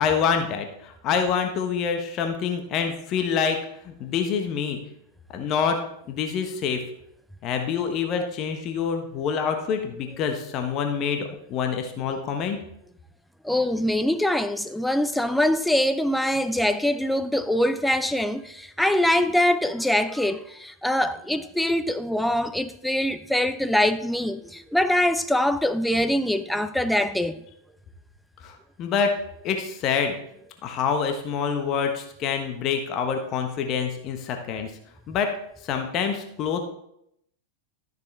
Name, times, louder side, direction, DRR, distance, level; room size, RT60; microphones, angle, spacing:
voice 1, 0.0-3.6 3.8-4.8 5.3-5.8 6.1-6.8 7.4-12.6 28.4-29.1 29.4-30.2 30.6-34.7 35.1-35.3 35.6-36.6, left 6 dB, 35° left, 1.2 m, -26 dB
voice 2, 13.4-27.4, left 1 dB, ahead, 0.6 m, -23 dB
13.0 x 6.7 x 3.4 m
figure-of-eight pair, 90°, 0 cm